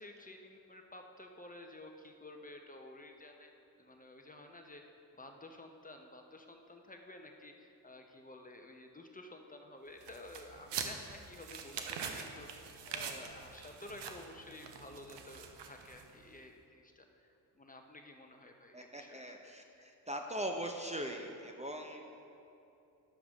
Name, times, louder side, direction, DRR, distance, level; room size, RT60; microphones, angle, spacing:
voice 1, 0.0-3.5 3.8-4.8 5.1-12.5 12.8-17.3 17.5-19.5, left 2 dB, 15° left, 3 dB, 0.8 m, -52 dB
sound 1, 10.0-16.2, right 6 dB, 55° right, 1.0 m, -44 dB
voice 2, 18.7-22.0, right 1 dB, 15° right, 3 dB, 0.8 m, -41 dB
11.5 x 7.1 x 3.6 m, 2.7 s
hypercardioid pair, 55°, 50 cm